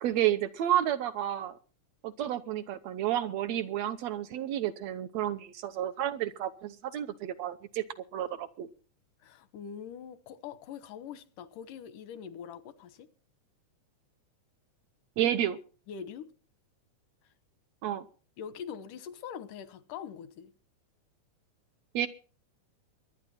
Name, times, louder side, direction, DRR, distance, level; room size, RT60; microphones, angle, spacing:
voice 1, 0.0-1.6 2.0-7.8 8.1-8.7 15.2-15.6 17.8-18.1 21.9-22.1, right 11 dB, 70° right, 1.9 m, -31 dB
voice 2, 9.2-13.1 15.9-16.3 18.4-20.5, left 8 dB, 85° left, 2.7 m, -43 dB
23.0 x 9.8 x 4.3 m
omnidirectional pair, 3.6 m